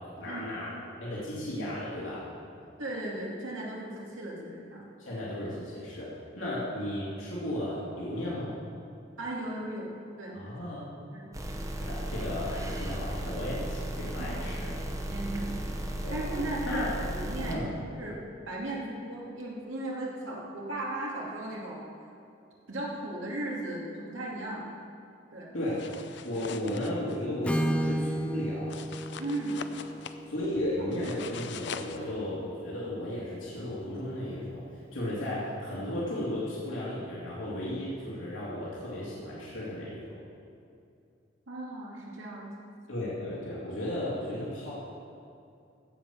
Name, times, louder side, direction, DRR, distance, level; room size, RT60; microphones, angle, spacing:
voice 1, 0.2-0.7 1.0-2.3 5.0-6.1 6.4-8.6 10.3-11.1 11.8-14.8 16.0-16.2 16.7-16.9 17.4-17.7 25.5-25.9 26.2-28.8 30.3-34.6 34.9-40.2 42.9-44.7, left 1 dB, 85° left, -7 dB, 2.6 m, -34 dB
voice 2, 2.8-4.8 6.4-6.5 9.2-9.9 10.2-10.5 11.1-11.3 14.2-14.5 15.1-15.6 16.1-16.8 17.1-18.2 18.5-21.8 22.7-24.6 25.3-25.5 29.2-29.6 41.5-42.5, right 1 dB, 90° right, -3 dB, 2.5 m, -36 dB
sound 1, 11.3-17.6, right 1 dB, 15° right, 0.9 m, -35 dB
sound 2, 25.7-27.2 28.7-30.2 30.9-32.0, left 6 dB, 60° left, 0.5 m, -42 dB
Acoustic guitar / Strum, 27.4-31.4, equal, 5° left, 0.4 m, -33 dB
15.5 x 5.4 x 7.0 m, 2.6 s
head